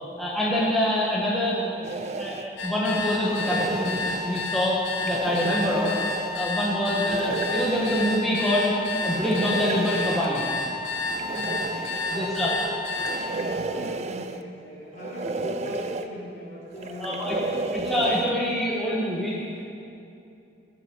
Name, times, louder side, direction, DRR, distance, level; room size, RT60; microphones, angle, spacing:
voice 1, 0.2-6.0 6.3-10.4 12.1-12.5 17.0-17.4 17.7-19.4, equal, ahead, -6 dB, 1.3 m, -26 dB
sound 1, 1.8-2.5 3.2-4.5 5.0-6.3 7.1-8.2 8.9-10.3 11.0-12.3 12.9-14.4 15.0-16.1 16.7-18.3, right 3 dB, 35° right, 0.4 m, -32 dB
sound 2, 2.6-13.2, left 3 dB, 90° left, 2.9 m, -30 dB
voice 2, 6.9-7.3 11.8-12.7 13.2-17.7, equal, 45° left, -5 dB, 3.1 m, -39 dB
13.5 x 6.8 x 7.6 m, 2.7 s
head